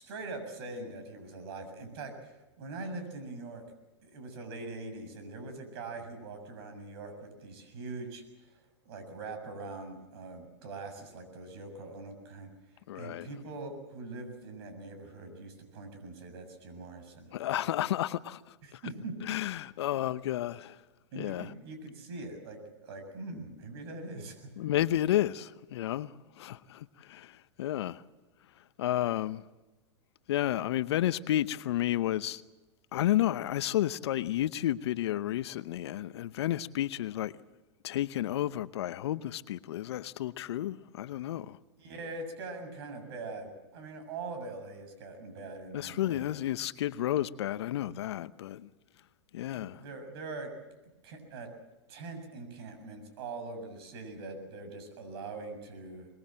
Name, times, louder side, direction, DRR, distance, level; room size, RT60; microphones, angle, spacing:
voice 1, 0.0-2.3 2.6-3.6 4.0-8.5 8.9-12.5 12.9-17.3 18.6-19.1 21.1-24.4 41.8-46.3 49.5-50.5 51.0-51.5 51.9-56.1, right 3 dB, 60° right, 7.0 m, -42 dB
voice 2, 12.9-13.3 17.3-18.4 18.7-18.8 19.3-20.8 21.2-21.5 24.6-28.0 28.8-29.4 30.3-32.4 32.9-37.3 37.8-41.6 45.7-48.7 49.3-49.8, left 13 dB, 65° left, 0.8 m, -31 dB
23.5 x 21.0 x 7.6 m
hypercardioid pair, 110°, 15 cm